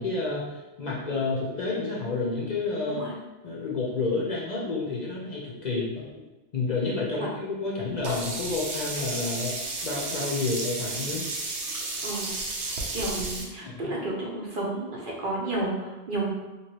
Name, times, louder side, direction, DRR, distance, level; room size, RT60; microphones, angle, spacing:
voice 1, 0.0-3.0 3.4-6.1 6.5-9.6 9.8-11.3 13.6-13.9, left 3 dB, 50° left, -4 dB, 0.6 m, -30 dB
Sink (filling or washing), 8.0-13.4, right 2 dB, 85° right, 1.0 m, -32 dB
voice 2, 12.6-16.3, right 2 dB, 55° right, -3 dB, 0.8 m, -32 dB
3.0 x 2.9 x 2.9 m, 1.1 s
omnidirectional pair, 1.1 m